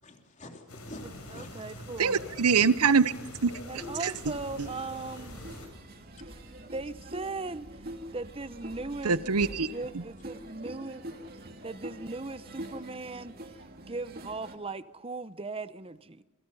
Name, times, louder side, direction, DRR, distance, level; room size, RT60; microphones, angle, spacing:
voice 1, 0.0-1.8 2.4-2.5 3.5-3.6, left 1 dB, 35° left, 3 dB, 3.4 m, -47 dB
sound 1, 0.7-5.7, left 1 dB, 85° left, 7.3 m, -44 dB
voice 2, 1.3-2.3 3.7-5.4 6.7-9.3 9.7-11.0 11.6-13.6 13.9-16.2, right 3 dB, 25° right, 14 dB, 0.8 m, -38 dB
voice 3, 2.0-3.1 3.4-3.5 4.0-4.1 4.6-4.7 9.0-10.0, right 5 dB, 90° right, 14 dB, 0.9 m, -24 dB
sound 2, 4.2-14.6, right 1 dB, 45° right, 2.5 m, -45 dB
28.0 x 23.5 x 5.5 m, 1.1 s
head